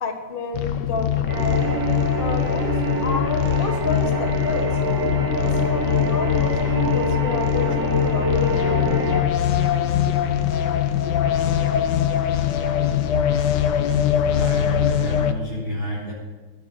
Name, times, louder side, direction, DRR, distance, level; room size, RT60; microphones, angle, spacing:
voice 1, 0.0-1.7 2.2-4.8 5.3-9.4, left 4 dB, 30° left, 5 dB, 1.3 m, -31 dB
sound 1, 0.5-15.3, left 10 dB, 60° left, 1.3 m, -22 dB
sound 2, 1.3-9.2, right 1 dB, 10° right, 2.4 m, -26 dB
voice 2, 14.2-16.1, equal, 85° left, -4 dB, 8.1 m, -29 dB
12.0 x 10.5 x 9.0 m, 1.2 s
omnidirectional pair, 2.3 m